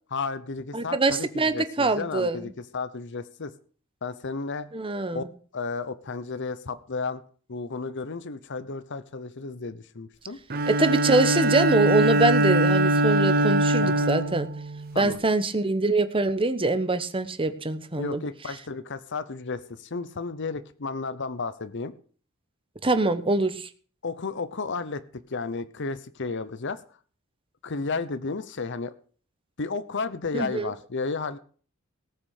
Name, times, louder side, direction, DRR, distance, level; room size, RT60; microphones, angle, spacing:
voice 1, 0.1-3.5 4.0-4.7 5.1-5.2 5.5-7.2 7.5-10.4 13.8-14.1 14.9-15.2 18.0-21.9 24.0-25.0 25.3-26.8 27.6-28.9 29.6-31.4, left 4 dB, 60° left, 14 dB, 0.8 m, -33 dB
voice 2, 0.7-2.5 4.7-5.3 10.7-14.5 15.0-18.2 22.8-23.7 30.3-30.7, right 2 dB, 25° right, 10 dB, 1.2 m, -24 dB
Bowed string instrument, 10.5-15.1, right 1 dB, 45° right, 0.9 m, -22 dB
18.5 x 6.3 x 6.5 m, 0.43 s
head